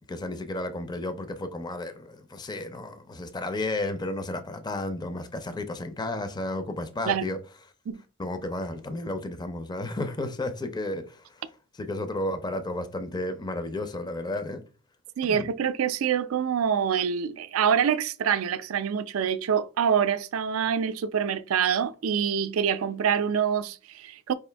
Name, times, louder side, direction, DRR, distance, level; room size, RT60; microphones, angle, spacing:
voice 1, 0.1-7.4 8.2-11.4 11.7-14.6 15.3-15.5, left 2 dB, 20° left, 0.5 m, -32 dB
voice 2, 15.2-24.3, right 7 dB, 85° right, 0.4 m, -26 dB
4.7 x 2.5 x 3.3 m
head